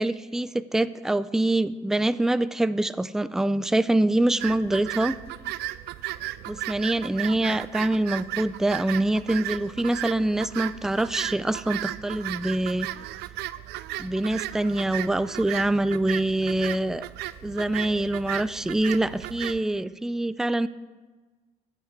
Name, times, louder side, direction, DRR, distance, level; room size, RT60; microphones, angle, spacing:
voice 1, 0.0-5.2 6.5-12.9 14.0-17.1 17.4-20.7, right 1 dB, 5° right, 15 dB, 0.3 m, -25 dB
sound 1, 4.4-19.6, right 15 dB, 80° right, 0.5 m, -35 dB
14.5 x 8.3 x 4.4 m, 1.3 s
cardioid pair, 110°, 17 cm